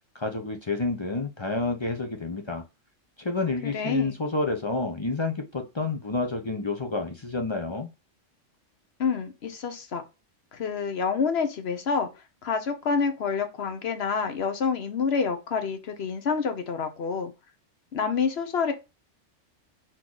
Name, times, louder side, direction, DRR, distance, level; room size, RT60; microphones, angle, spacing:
voice 1, 0.1-2.6 3.2-7.9, left 3 dB, 30° left, 0.6 m, -29 dB
voice 2, 3.6-4.2 9.0-10.0 10.5-12.1 12.4-17.3 17.9-18.7, left 5 dB, 60° left, 1.1 m, -27 dB
4.2 x 3.0 x 3.8 m
omnidirectional pair, 1.3 m